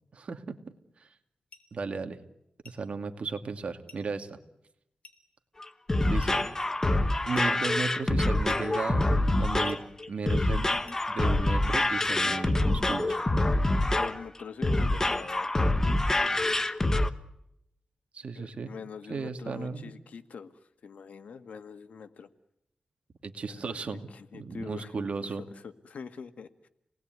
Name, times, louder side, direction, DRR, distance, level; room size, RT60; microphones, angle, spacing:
voice 1, 0.1-0.7 1.0-1.1 1.7-2.2 2.6-4.4 6.1-6.4 7.3-9.1 9.4-9.8 10.1-10.6 11.1-13.2 18.1-18.7 19.1-19.9 23.2-25.4, right 4 dB, 60° right, 6 dB, 2.5 m, -35 dB
sound 1, 1.5-1.7 2.6-2.9 3.9-4.1 5.0-5.3 6.2-6.5 7.3-7.6 8.5-8.7 9.7-9.9 10.9-11.1 12.0-12.3, left 4 dB, 60° left, 3.7 m, -54 dB
sound 2, 5.6-17.1, left 2 dB, 20° left, 1.2 m, -26 dB
voice 2, 13.9-15.5 18.3-20.5 20.8-22.3 23.5-23.8 24.1-26.7, left 6 dB, 80° left, 10 dB, 1.7 m, -44 dB
29.0 x 20.0 x 9.5 m, 0.82 s
wide cardioid pair, 125°, 2 cm